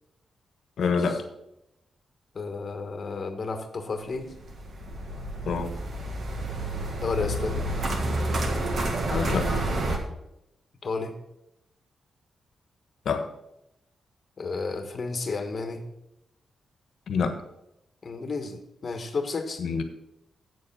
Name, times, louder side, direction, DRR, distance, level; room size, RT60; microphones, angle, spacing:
voice 1, 0.8-1.2 5.4-5.7 9.1-9.5 13.0-13.3 17.1-17.3 19.6-19.8, left 5 dB, 70° left, 1.2 m, -26 dB
voice 2, 2.3-4.3 7.0-7.7 10.8-11.1 14.4-15.8 18.0-19.6, left 4 dB, 40° left, 1.3 m, -32 dB
sound 1, 4.2-10.0, right 1 dB, 55° right, 1.6 m, -29 dB
8.3 x 7.1 x 6.8 m
wide cardioid pair, 140°, 0 cm